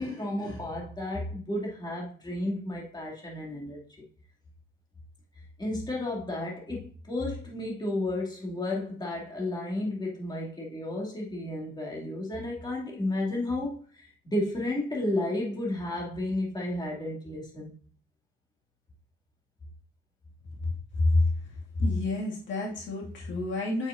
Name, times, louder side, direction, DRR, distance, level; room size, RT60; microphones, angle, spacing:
voice 1, 0.0-3.8 5.6-17.8, left 1 dB, 20° left, -2 dB, 2.6 m, -32 dB
voice 2, 21.8-23.9, left 2 dB, 70° left, -3 dB, 2.4 m, -27 dB
6.7 x 6.0 x 2.7 m, 0.43 s
cardioid pair, 90°, 20 cm